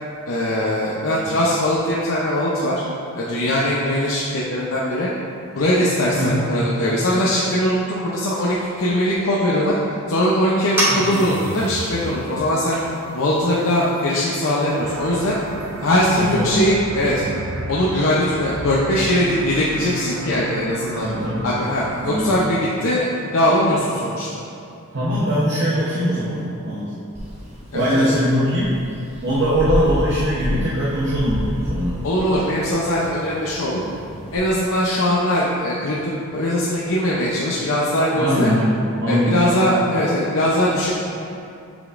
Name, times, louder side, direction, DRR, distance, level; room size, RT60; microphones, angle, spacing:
voice 1, 0.3-2.8 3.1-5.1 5.6-9.7 10.1-12.8 13.1-15.4 15.8-17.2 17.7-21.1 21.4-24.4 27.7-28.1 32.0-33.8 34.3-38.5 39.1-41.0, equal, 70° left, -6 dB, 0.6 m, -21 dB
voice 2, 6.1-6.4 10.9-11.2 16.2-16.6 21.0-21.4 22.1-22.3 24.9-26.9 27.7-28.7 29.2-32.0 38.2-39.4, equal, 50° right, -8 dB, 0.9 m, -21 dB
sound 1, 10.7-16.4, right 1 dB, 10° right, 0.8 m, -30 dB
sound 2, 14.8-22.4, right 2 dB, 70° right, 0.4 m, -33 dB
sound 3, 27.1-34.4, equal, 30° right, 1.0 m, -30 dB
8.1 x 5.1 x 2.5 m, 2.6 s
head